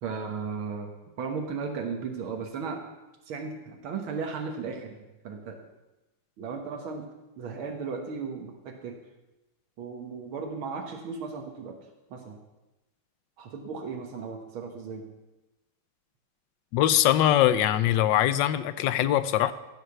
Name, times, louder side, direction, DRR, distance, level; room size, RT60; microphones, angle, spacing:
voice 1, 0.0-0.9 1.2-2.8 3.3-5.6 6.4-7.1 7.4-9.0 9.8-11.8 12.1-12.4 13.4-15.1, right 5 dB, 85° right, 3 dB, 2.1 m, -35 dB
voice 2, 16.7-19.5, left 12 dB, 70° left, 15 dB, 1.2 m, -22 dB
15.0 x 6.7 x 6.9 m, 1.0 s
omnidirectional pair, 2.2 m